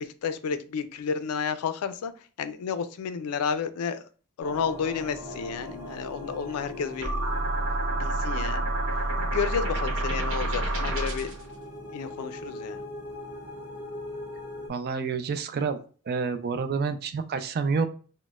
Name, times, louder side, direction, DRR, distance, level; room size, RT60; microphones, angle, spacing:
voice 1, 0.0-2.1 2.4-4.0 4.4-7.1 7.9-8.7 9.2-11.3 11.9-12.8, left 6 dB, 75° left, 12 dB, 0.3 m, -31 dB
sound 1, 4.4-14.7, left 1 dB, 5° right, 0.9 m, -41 dB
sound 2, 7.0-11.4, right 2 dB, 65° right, 1.0 m, -28 dB
voice 2, 14.7-15.8 16.1-17.9, right 5 dB, 45° right, 9 dB, 0.4 m, -28 dB
4.0 x 2.0 x 2.3 m, 0.38 s
head